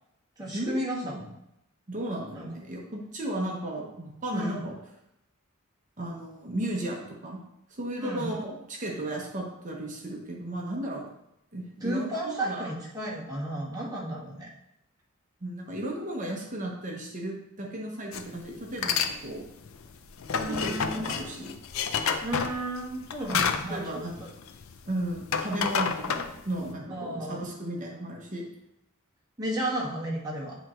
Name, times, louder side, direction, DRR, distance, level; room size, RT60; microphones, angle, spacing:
voice 1, 0.4-1.2 2.3-2.5 4.3-4.6 8.0-8.3 11.8-14.5 20.3-21.1 22.2-23.9 24.2-24.3 26.9-27.4 29.4-30.6, right 1 dB, 20° right, -5 dB, 1.5 m, -33 dB
voice 2, 1.9-4.7 6.0-7.4 7.7-11.1 11.5-12.7 15.4-19.4 20.5-21.5 23.3-23.4 23.7-24.2 24.9-28.5, right 1 dB, 35° right, -1 dB, 0.9 m, -34 dB
sound 1, 18.1-18.3 18.7-19.1 19.5-24.8 25.1-26.7, left 6 dB, 70° left, 0.5 m, -29 dB
8.2 x 3.0 x 4.4 m, 0.82 s
head